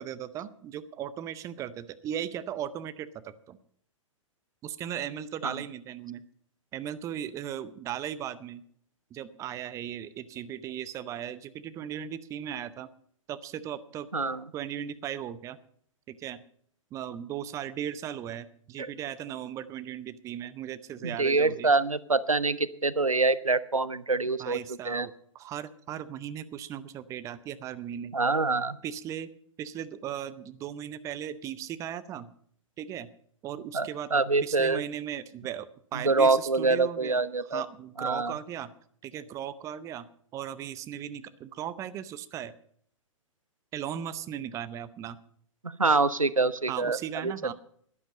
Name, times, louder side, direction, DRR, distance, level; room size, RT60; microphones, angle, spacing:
voice 1, 0.0-3.6 4.6-6.2 6.7-8.6 9.1-12.9 13.3-14.1 14.5-15.6 16.1-16.4 16.9-21.7 24.4-28.1 28.8-29.3 29.6-32.3 32.8-33.1 33.4-38.7 39.0-40.1 40.3-42.5 43.7-45.2 46.7-47.5, right 10 dB, 20° right, 14 dB, 0.6 m, -37 dB
voice 2, 14.1-14.4 18.8-18.9 21.0-24.6 24.8-25.1 28.1-28.8 33.7-34.8 36.0-37.6 38.0-38.3 45.6-47.0 47.2-47.5, right 3 dB, 90° right, 17 dB, 0.6 m, -25 dB
11.5 x 11.0 x 5.4 m, 0.62 s
figure-of-eight pair, 110°, 17 cm